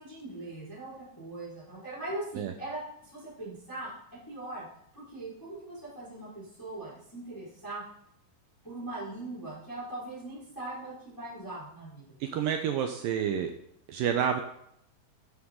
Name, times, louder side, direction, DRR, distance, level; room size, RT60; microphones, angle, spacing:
voice 1, 0.0-3.9 4.2-4.7 4.9-7.8 8.6-12.5, right 2 dB, 5° left, -9 dB, 4.4 m, -40 dB
voice 2, 12.2-13.5 13.9-14.4, right 8 dB, 85° right, 5 dB, 1.9 m, -29 dB
12.5 x 10.0 x 3.8 m, 0.72 s
omnidirectional pair, 5.0 m